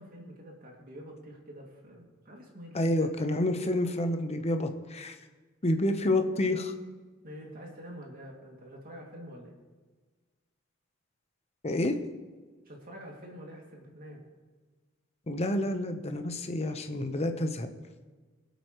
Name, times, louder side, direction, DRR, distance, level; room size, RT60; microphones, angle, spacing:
voice 1, 0.0-3.1 7.2-9.5 12.6-14.2, equal, 45° right, -1 dB, 2.4 m, -46 dB
voice 2, 2.7-5.1 5.6-6.7 11.6-12.0 15.3-17.7, left 1 dB, 30° left, 7 dB, 0.9 m, -29 dB
22.5 x 8.2 x 3.1 m, 1.4 s
head